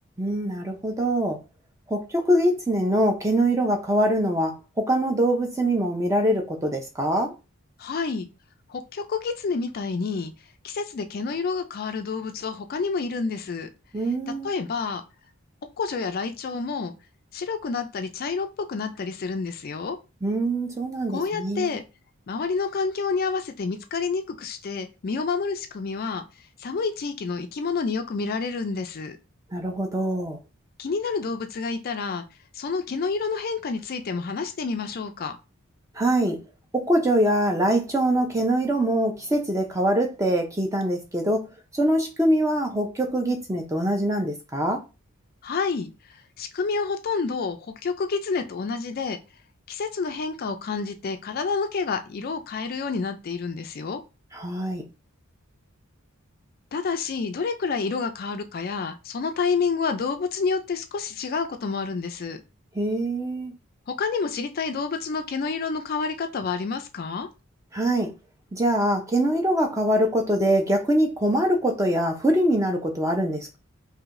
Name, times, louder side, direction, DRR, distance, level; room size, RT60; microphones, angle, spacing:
voice 1, 0.2-1.4 1.9-7.3 13.9-14.5 20.2-21.7 29.5-30.4 36.0-36.4 36.7-41.4 41.7-44.8 54.3-54.8 62.7-63.5 67.7-68.1 68.5-73.6, right 1 dB, 15° right, 0.6 m, -23 dB
voice 2, 7.8-8.3 8.7-10.3 10.6-13.7 14.3-15.0 15.8-16.9 17.3-20.0 21.1-21.8 22.3-26.2 26.6-29.2 30.8-32.2 32.5-35.4 45.4-49.2 49.7-54.0 56.7-62.4 63.9-67.3, left 4 dB, 45° left, 0.4 m, -29 dB
4.7 x 2.7 x 2.5 m
head